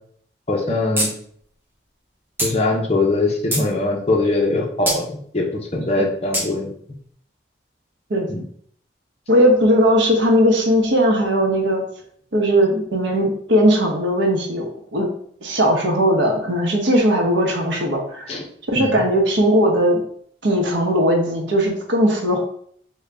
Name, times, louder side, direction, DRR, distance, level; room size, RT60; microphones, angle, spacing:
voice 1, 0.5-1.1 2.4-5.1 5.3-6.7 8.3-8.4 18.3-18.4 18.7-19.0, left 2 dB, 35° left, 0 dB, 0.6 m, -21 dB
sound 1, 1.0-1.1 1.4-1.5 2.4-2.5 3.1-3.7 4.9-5.0 6.3-6.5, right 1 dB, 10° right, 0.7 m, -22 dB
voice 2, 9.3-11.8 12.3-14.7 14.9-15.1 15.4-18.4 18.7-20.0 20.4-22.4, equal, 80° right, 1 dB, 0.8 m, -18 dB
3.8 x 2.2 x 3.3 m, 0.62 s
head